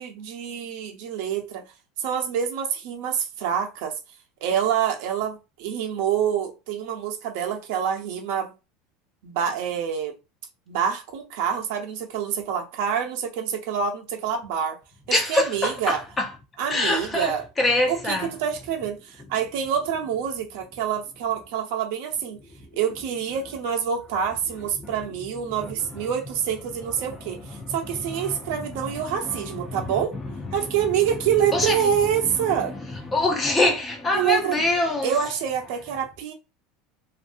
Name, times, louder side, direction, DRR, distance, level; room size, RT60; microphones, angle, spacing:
voice 1, 0.0-1.6 2.0-3.9 4.4-8.5 9.2-10.1 10.7-14.8 15.3-16.0 16.6-17.4 17.9-22.4 22.7-30.2 30.5-32.7 34.1-34.6 35.0-36.3, right 8 dB, 70° right, 0.8 m, -26 dB
voice 2, 15.1-16.3 16.6-18.3 24.8-24.9 25.6-25.7 27.0-27.2 27.5-30.7 31.5-31.9 32.2-35.1, left 2 dB, 20° left, 0.7 m, -26 dB
2.6 x 2.6 x 2.6 m
supercardioid pair, 140°, 0 cm